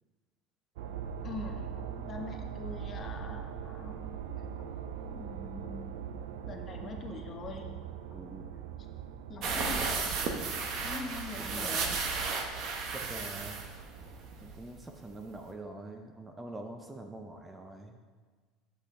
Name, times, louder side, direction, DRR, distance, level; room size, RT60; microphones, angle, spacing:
sound 1, 0.8-14.3, right 8 dB, 85° right, 0.4 m, -42 dB
voice 1, 1.2-4.2 5.1-7.7 9.3-9.9 10.8-12.0, left 4 dB, 30° left, 4 dB, 0.8 m, -43 dB
voice 2, 8.1-8.5 11.4-12.0 12.9-13.7 14.4-18.0, right 2 dB, 15° right, 4 dB, 0.5 m, -44 dB
sound 2, 9.4-14.7 15.0-15.1 15.4-15.5, right 4 dB, 50° right, 0.9 m, -34 dB
8.3 x 5.7 x 3.7 m, 1.4 s
supercardioid pair, 135°, 0 cm